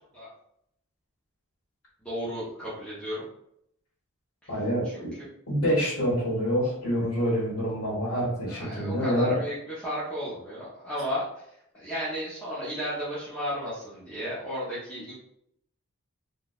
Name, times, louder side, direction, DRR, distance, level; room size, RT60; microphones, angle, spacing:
voice 1, 2.0-3.2 4.4-4.5 4.8-5.3 8.5-11.3 11.7-15.1, equal, 5° left, -11 dB, 0.9 m, -34 dB
voice 2, 4.5-5.1 5.5-9.3, equal, 70° left, -7 dB, 1.3 m, -26 dB
3.7 x 2.5 x 2.4 m, 0.73 s
head